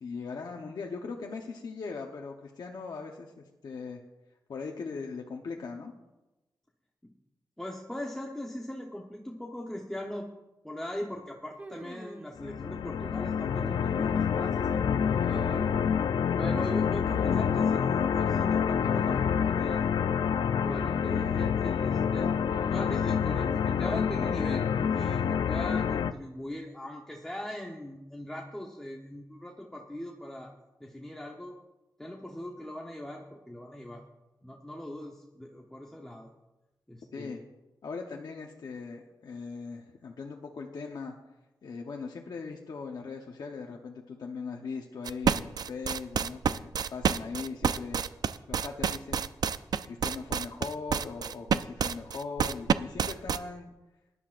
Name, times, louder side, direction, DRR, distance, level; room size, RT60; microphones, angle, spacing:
voice 1, 0.0-4.0 4.5-5.9 37.1-37.4 37.8-41.1 41.6-48.0 48.5-49.2 49.8-53.7, left 4 dB, 65° left, 1 dB, 1.0 m, -39 dB
voice 2, 7.6-10.3 10.6-14.8 15.2-15.6 16.4-19.9 20.7-22.3 22.7-30.5 30.8-31.5 32.0-34.0 34.4-36.3 36.9-37.3, left 1 dB, 5° left, -2 dB, 0.9 m, -40 dB
sound 1, 11.6-12.3 13.6-14.4 15.1-15.8 17.1-17.6 17.8-17.9 18.8-19.5 20.6-21.4 22.4-23.2 24.2-24.9, right 1 dB, 25° right, 1.1 m, -46 dB
sound 2, 12.4-26.1, left 7 dB, 85° left, 0.5 m, -27 dB
sound 3, 45.1-53.4, right 7 dB, 60° right, 0.4 m, -28 dB
20.5 x 11.0 x 2.5 m, 1.0 s
wide cardioid pair, 180°, 8 cm